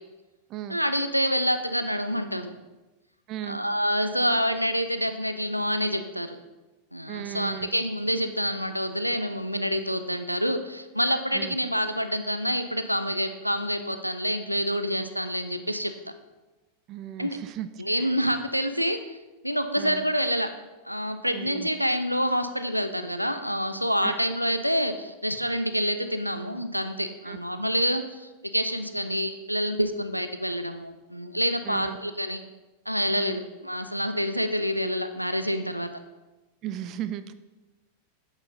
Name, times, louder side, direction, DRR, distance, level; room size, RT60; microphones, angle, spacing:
voice 1, 0.7-2.6 3.5-6.4 6.9-15.9 17.2-17.4 17.8-19.0 19.4-20.5 20.9-32.4 32.9-35.9, equal, 90° right, 9 dB, 0.5 m, -27 dB
voice 2, 3.3-3.6 7.1-7.7 11.3-11.5 16.9-17.7 18.0-18.1 19.8-20.1 21.3-21.7 24.0-24.2 27.3-27.4 31.6-32.0 33.2-33.4 36.6-37.3, right 11 dB, 35° right, 12 dB, 0.4 m, -36 dB
8.7 x 8.0 x 2.8 m, 1.1 s
figure-of-eight pair, 90°, 0 cm